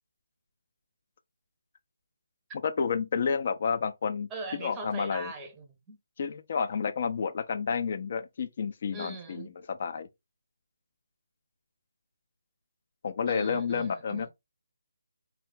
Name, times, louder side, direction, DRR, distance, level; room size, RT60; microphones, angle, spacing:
voice 1, 2.6-4.3 4.6-5.3 6.2-10.1 13.0-14.3, left 6 dB, 40° left, 0.7 m, -30 dB
voice 2, 4.3-6.0 8.9-9.5 13.3-14.3, right 2 dB, 10° right, 0.8 m, -40 dB
4.6 x 2.5 x 3.6 m
figure-of-eight pair, 150°, 0 cm